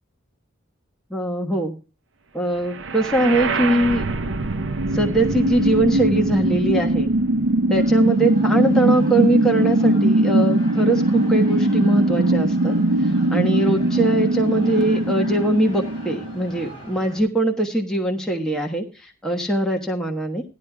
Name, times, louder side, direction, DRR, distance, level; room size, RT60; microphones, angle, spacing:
voice 1, 1.1-1.7 2.3-4.2 4.9-7.1 7.7-12.7 13.3-20.4, right 1 dB, 5° left, 0 dB, 1.2 m, -21 dB
sound 1, 2.7-16.7, right 1 dB, 70° right, 0.7 m, -21 dB
sound 2, 7.7-17.2, left 1 dB, 30° left, 6.9 m, -42 dB
16.0 x 11.5 x 2.3 m, 0.31 s
head